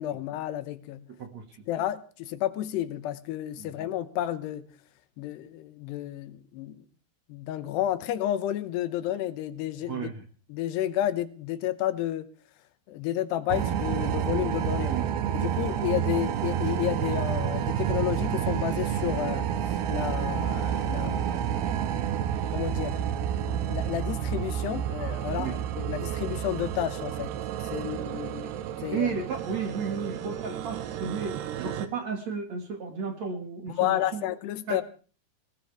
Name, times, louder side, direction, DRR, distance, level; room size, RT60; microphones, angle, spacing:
voice 1, 0.0-1.1 1.7-4.7 5.2-6.8 7.3-10.1 10.5-12.3 12.9-14.9 15.3-21.7 22.5-23.0 23.3-27.4 27.7-28.5 28.8-29.1 33.7-34.8, left 12 dB, 80° left, 3.1 m, -31 dB
voice 2, 9.9-10.2 14.7-15.1 25.4-25.6 28.9-34.2 34.7-34.8, right 5 dB, 50° right, 2.8 m, -33 dB
sound 1, 13.5-31.9, right 9 dB, 90° right, 3.2 m, -30 dB
20.0 x 18.5 x 3.5 m
omnidirectional pair, 4.7 m